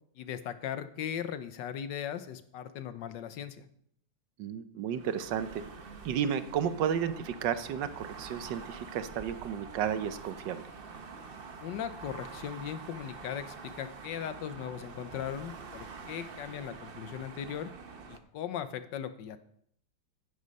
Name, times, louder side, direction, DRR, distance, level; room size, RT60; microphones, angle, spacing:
voice 1, 0.2-3.6 11.6-17.7 18.1-19.4, left 9 dB, 75° left, 11 dB, 1.5 m, -38 dB
voice 2, 4.4-5.5 6.0-10.6, right 8 dB, 75° right, 12 dB, 1.4 m, -32 dB
sound 1, 4.9-18.2, right 4 dB, 40° right, 0.8 m, -46 dB
9.9 x 9.5 x 5.3 m, 0.68 s
omnidirectional pair, 2.0 m